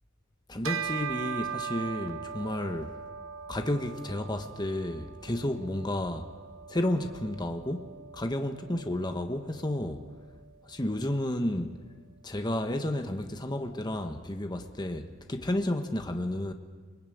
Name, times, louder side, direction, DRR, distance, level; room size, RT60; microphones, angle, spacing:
voice 1, 0.5-3.0 3.5-6.3 6.7-10.1 10.6-11.8 12.2-16.5, left 1 dB, 20° left, 1.4 m, -32 dB
Bell, 0.6-10.3, right 7 dB, 85° right, 1.0 m, -40 dB
27.0 x 22.5 x 9.4 m
head